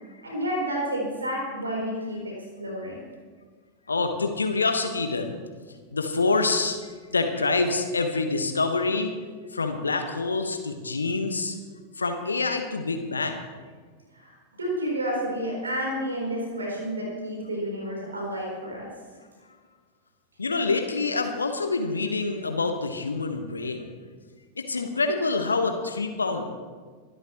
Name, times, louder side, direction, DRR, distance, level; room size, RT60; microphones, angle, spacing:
voice 1, 0.2-2.3 2.6-3.0 14.1-18.9, equal, 75° right, -2 dB, 3.9 m, -30 dB
voice 2, 3.9-5.4 5.9-6.8 7.1-9.1 9.5-11.5 12.0-13.4 20.4-23.9 24.6-26.5, left 3 dB, 75° left, 6 dB, 1.3 m, -26 dB
23.5 x 13.0 x 3.1 m, 1.5 s
figure-of-eight pair, 90°, 0 cm